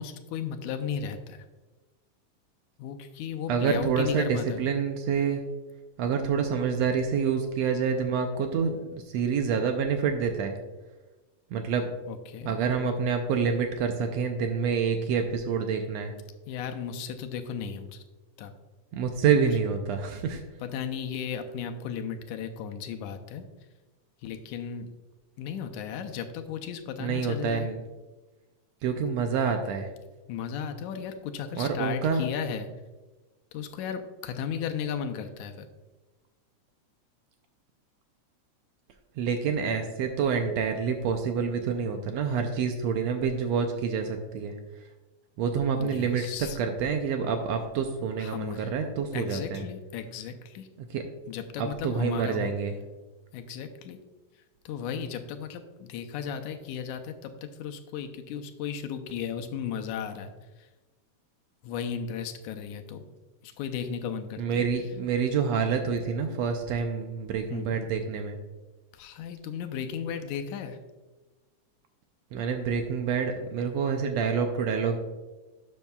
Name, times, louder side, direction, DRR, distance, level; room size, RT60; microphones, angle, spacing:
voice 1, 0.0-1.5 2.8-4.6 12.1-12.6 16.5-18.0 18.4-18.5 19.4-19.5 20.6-23.5 24.2-24.9 25.4-27.7 30.3-32.7 33.5-35.7 45.8-46.6 48.2-48.7 49.1-50.7 51.3-52.5 53.3-54.0 54.7-57.3 57.6-60.3 60.6-60.7 61.6-63.1 63.4-64.7 67.5-67.8 68.9-70.8, left 7 dB, 85° left, 7 dB, 2.1 m, -35 dB
voice 2, 3.5-5.4 6.0-10.6 11.5-11.9 12.5-16.1 18.9-20.4 27.0-27.8 28.8-29.9 31.6-32.2 39.2-44.6 45.4-49.6 50.8-51.0 51.6-52.7 64.4-68.4 72.3-75.0, right 6 dB, 75° right, 6 dB, 1.6 m, -27 dB
12.0 x 7.3 x 2.3 m, 1.2 s
omnidirectional pair, 3.4 m